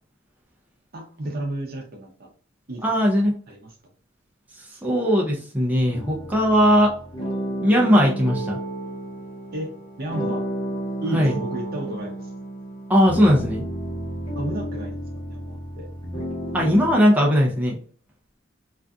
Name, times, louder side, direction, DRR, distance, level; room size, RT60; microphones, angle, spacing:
voice 1, 0.9-2.3 2.7-2.9 3.5-3.8 4.7-5.0 9.5-10.5 11.0-12.3 14.3-15.0 15.3-15.9, right 1 dB, 50° right, 2 dB, 0.6 m, -33 dB
voice 2, 2.8-3.3 4.8-6.9 7.6-8.6 11.1-11.3 12.9-13.6 16.5-17.8, equal, 10° right, -2 dB, 0.4 m, -18 dB
sound 1, 5.9-17.0, right 1 dB, 25° left, 1.1 m, -32 dB
2.5 x 2.4 x 2.3 m, 0.43 s
head